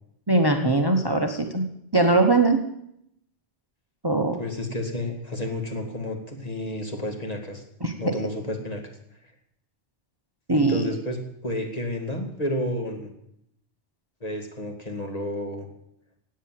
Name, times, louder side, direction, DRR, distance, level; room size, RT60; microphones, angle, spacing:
voice 1, 0.3-1.7 1.9-2.6 4.0-4.4 7.8-8.2 10.5-10.9, right 2 dB, 20° right, 6 dB, 1.1 m, -21 dB
voice 2, 4.4-7.6 8.0-8.8 10.5-13.1 14.2-15.7, left 1 dB, 35° left, 3 dB, 2.3 m, -31 dB
17.0 x 8.9 x 7.6 m, 0.76 s
omnidirectional pair, 1.2 m